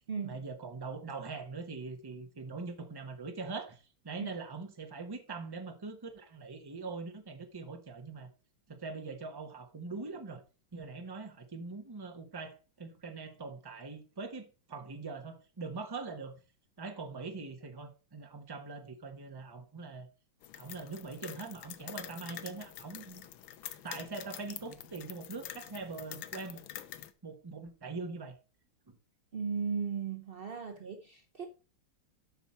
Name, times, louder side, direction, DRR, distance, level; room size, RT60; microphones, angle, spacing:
voice 1, 0.2-8.3 8.7-10.4 10.7-16.4 16.8-20.1 20.5-23.3 23.8-26.6 27.2-28.3 28.9-29.0, right 4 dB, 30° right, 0.4 m, -42 dB
sound 1, 20.4-27.1, left 12 dB, 80° left, 1.5 m, -46 dB
voice 2, 29.3-31.4, right 6 dB, 90° right, 0.5 m, -36 dB
8.0 x 5.8 x 4.2 m
omnidirectional pair, 2.2 m